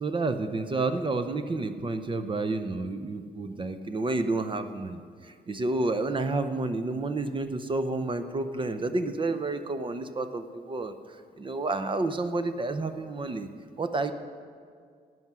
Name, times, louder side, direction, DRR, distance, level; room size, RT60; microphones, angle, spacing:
voice 1, 0.0-10.9 11.4-13.5 13.8-14.1, right 3 dB, 30° right, 9 dB, 0.6 m, -30 dB
13.0 x 9.3 x 6.1 m, 2.1 s
cardioid pair, 110°, 17 cm